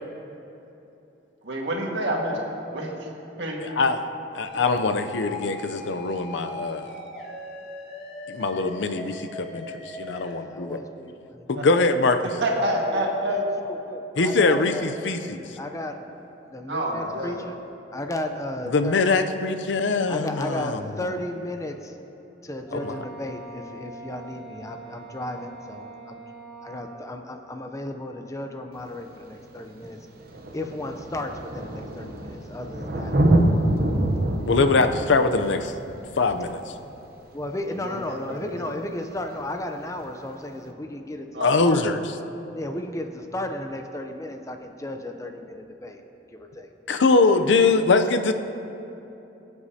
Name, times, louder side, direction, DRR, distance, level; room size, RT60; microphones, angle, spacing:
voice 1, 1.4-2.4 2.7-2.9 3.4-3.7 11.6-11.7 12.2-13.4 16.7-17.4 37.8-38.6 41.3-41.6, right 1 dB, 70° right, -1 dB, 1.7 m, -28 dB
voice 2, 3.6-4.0 4.3-6.9 8.3-9.3 10.1-10.8 11.5-12.2 14.2-15.5 18.7-20.9 22.7-22.9 34.4-35.7 36.2-36.6 41.4-42.0 46.9-48.3, left 3 dB, 90° left, 8 dB, 0.6 m, -22 dB
sound 1, 4.4-10.3, left 2 dB, 70° left, 2.3 m, -39 dB
voice 3, 10.5-11.1 12.7-15.1 15.6-16.0 16.5-17.6 17.9-19.0 20.1-22.0 22.4-26.2 26.6-30.1 30.5-33.1 33.6-33.8 37.3-41.9 42.5-46.0 46.3-46.7, left 1 dB, 20° left, 5 dB, 0.6 m, -34 dB
Wind instrument woodwind instrument, 22.6-27.2, right 3 dB, 5° right, 2.0 m, -43 dB
Thunder, 28.8-28.9 29.9-30.0 30.2-37.5 39.2-39.3, right 1 dB, 55° right, 0.8 m, -26 dB
21.0 x 8.1 x 2.8 m, 3.0 s
head